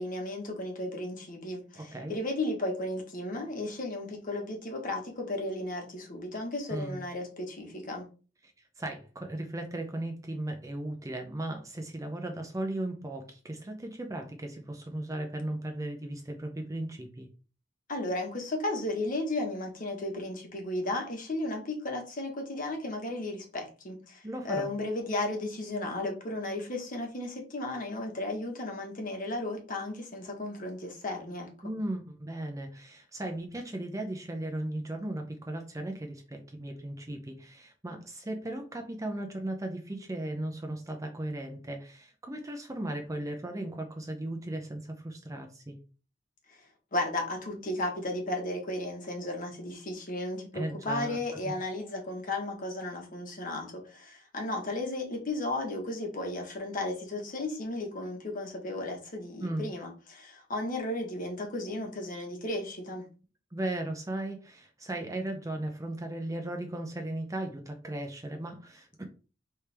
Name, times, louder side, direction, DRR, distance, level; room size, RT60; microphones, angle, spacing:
voice 1, 0.0-8.1 17.9-31.5 46.9-63.1, left 2 dB, 45° left, 2 dB, 1.3 m, -34 dB
voice 2, 1.8-2.2 6.7-7.0 8.8-17.3 24.2-24.7 31.6-45.8 50.5-51.2 59.4-59.7 63.5-69.0, right 1 dB, 15° right, 4 dB, 0.6 m, -36 dB
4.3 x 3.4 x 3.4 m, 0.35 s
head